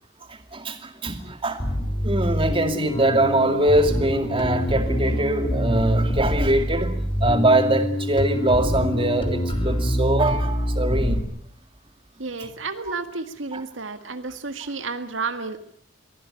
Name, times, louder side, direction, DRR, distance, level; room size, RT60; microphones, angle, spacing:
voice 1, 0.3-1.7 2.0-11.3 12.4-12.5 13.5-13.6 14.6-14.7, right 1 dB, 25° right, 7 dB, 2.4 m, -23 dB
Bass guitar, 1.6-11.2, equal, 25° left, 3.5 m, -25 dB
voice 2, 12.2-15.6, right 4 dB, 80° right, 9 dB, 1.8 m, -31 dB
23.0 x 16.0 x 10.0 m, 0.68 s
head